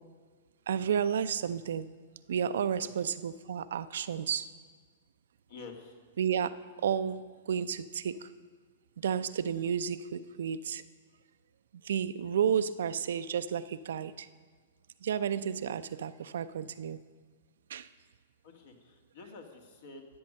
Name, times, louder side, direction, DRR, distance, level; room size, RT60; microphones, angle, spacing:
voice 1, 0.7-1.9 2.3-4.5 6.2-8.3 9.0-10.8 11.8-14.3 15.0-17.0 17.7-17.9, right 8 dB, 70° right, 13 dB, 0.5 m, -32 dB
voice 2, 2.8-3.2 5.5-6.0 18.4-20.1, left 4 dB, 65° left, 3 dB, 2.1 m, -49 dB
12.5 x 7.9 x 6.4 m, 1.5 s
hypercardioid pair, 115°, 0 cm